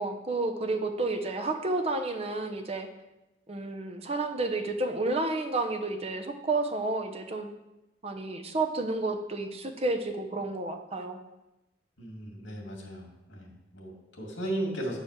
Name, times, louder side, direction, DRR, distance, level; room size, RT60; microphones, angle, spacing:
voice 1, 0.0-2.9 3.5-7.5 8.0-11.2, right 2 dB, 30° right, 5 dB, 0.8 m, -31 dB
voice 2, 12.0-15.0, right 1 dB, 75° left, 0 dB, 2.3 m, -36 dB
8.7 x 4.6 x 6.5 m, 0.97 s
head